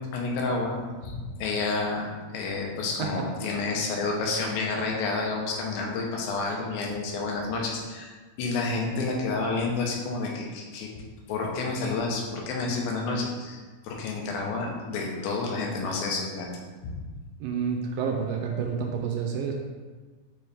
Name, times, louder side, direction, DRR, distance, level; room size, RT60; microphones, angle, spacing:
voice 1, 0.0-2.1 2.3-10.9 11.3-16.5 16.8-17.0, left 3 dB, 75° left, -1 dB, 2.6 m, -30 dB
voice 2, 17.4-19.5, right 6 dB, 80° right, 2 dB, 2.2 m, -29 dB
6.1 x 4.6 x 3.4 m, 1.4 s
omnidirectional pair, 4.3 m